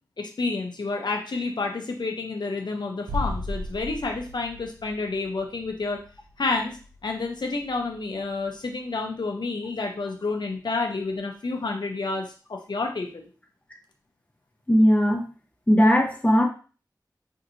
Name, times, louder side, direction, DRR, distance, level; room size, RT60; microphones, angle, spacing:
voice 1, 0.2-6.0 6.4-6.8 7.0-13.3, left 3 dB, 80° left, 3 dB, 0.5 m, -29 dB
sound 1, 3.1-8.8 9.1-9.2, left 1 dB, 75° right, 0.5 m, -37 dB
voice 2, 14.7-15.2 15.7-16.4, equal, 20° left, 1 dB, 0.9 m, -18 dB
4.4 x 2.8 x 2.6 m, 0.36 s
wide cardioid pair, 65°, 7 cm